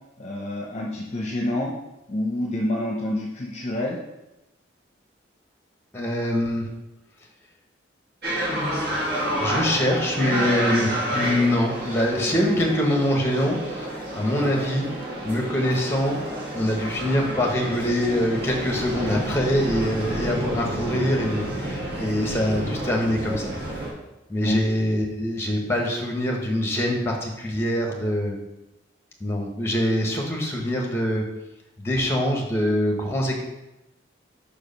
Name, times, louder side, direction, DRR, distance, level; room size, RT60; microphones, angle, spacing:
voice 1, 0.2-1.7 2.1-4.0 24.4-24.6, left 1 dB, 35° left, -1 dB, 0.7 m, -27 dB
voice 2, 5.9-6.7 8.9-14.9 15.2-16.2 16.5-23.5 24.3-28.4 29.2-31.2 31.8-33.4, left 1 dB, 15° left, 0 dB, 1.1 m, -24 dB
sound 1, 8.2-23.9, right 1 dB, 50° right, 1.8 m, -29 dB
5.1 x 4.9 x 5.3 m, 0.95 s
head